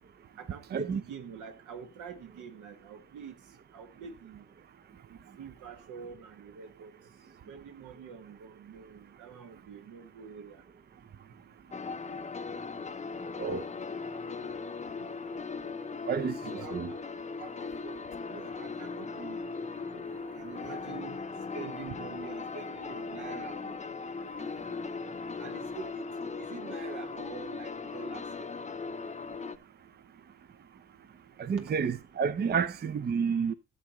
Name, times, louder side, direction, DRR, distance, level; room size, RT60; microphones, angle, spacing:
voice 1, 0.4-3.4 3.7-4.5 5.1-6.9 7.5-10.6 15.0-15.1 16.4-17.0 17.4-20.1 20.3-21.2 21.5-23.8 24.4-24.7 25.4-26.0 26.4-28.5 31.5-31.6, right 6 dB, 80° right, 1.6 m, -45 dB
sound 1, 11.7-29.6, left 4 dB, 25° left, 0.6 m, -38 dB
voice 2, 16.1-16.9 31.4-33.5, right 6 dB, 35° right, 0.6 m, -30 dB
13.5 x 6.6 x 3.0 m
cardioid pair, 90°, 30 cm